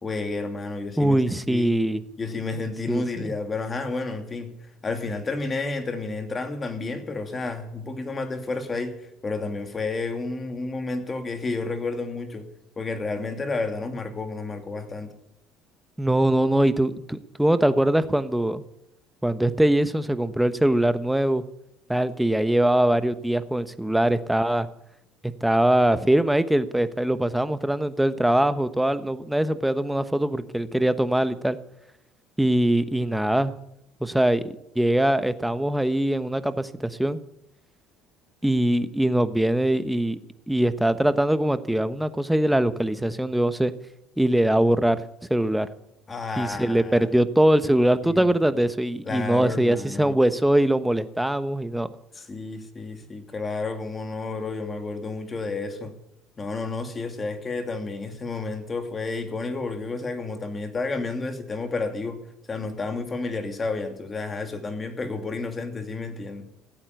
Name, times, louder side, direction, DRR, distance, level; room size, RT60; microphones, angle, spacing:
voice 1, 0.0-1.8 2.2-4.5 4.8-12.5 12.8-15.1 46.1-47.1 48.0-48.6 49.1-50.2 52.1-55.9 56.4-62.2 62.5-66.5, left 3 dB, 30° left, 6 dB, 2.7 m, -31 dB
voice 2, 1.0-2.0 2.9-3.0 16.0-18.6 19.2-21.4 21.9-24.7 25.4-31.6 32.4-33.6 34.0-37.2 38.4-40.2 40.5-43.7 44.2-45.0 45.3-45.7 46.4-51.9, right 1 dB, 5° right, 12 dB, 1.1 m, -22 dB
16.0 x 8.6 x 9.6 m, 0.80 s
supercardioid pair, 90°, 0 cm